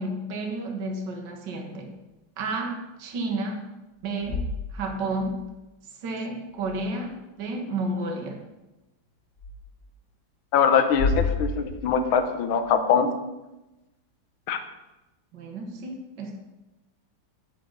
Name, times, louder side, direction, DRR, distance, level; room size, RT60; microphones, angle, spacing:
voice 1, 0.0-2.0 2.4-3.7 4.0-5.4 6.0-8.4 15.3-16.4, right 2 dB, 60° right, 2 dB, 1.8 m, -31 dB
sound 1, 4.0-5.4 6.5-7.2 9.4-9.5 10.8-12.8, left 3 dB, 40° left, 2.3 m, -31 dB
voice 2, 10.5-13.1 14.5-14.6, left 7 dB, 85° left, 8 dB, 1.8 m, -22 dB
10.0 x 8.6 x 4.0 m, 1.0 s
omnidirectional pair, 2.2 m